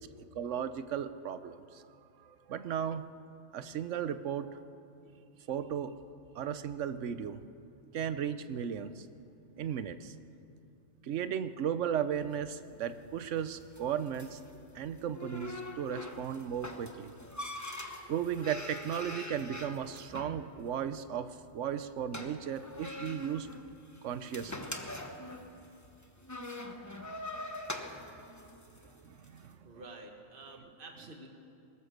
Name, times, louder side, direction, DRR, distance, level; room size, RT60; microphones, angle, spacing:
voice 1, 0.3-1.8 2.2-3.0 3.5-4.6 5.5-5.9 6.4-7.4 7.9-9.1 9.6-10.1 11.0-14.4 14.7-17.1 18.1-23.5 24.0-24.7 28.8-29.7, right 8 dB, 65° right, 12 dB, 1.1 m, -35 dB
sound 1, 12.2-29.4, left 1 dB, 15° left, 1.1 m, -44 dB
voice 2, 29.3-31.3, right 2 dB, 40° right, 2 dB, 1.8 m, -50 dB
21.0 x 18.5 x 6.6 m, 2.6 s
omnidirectional pair, 1.4 m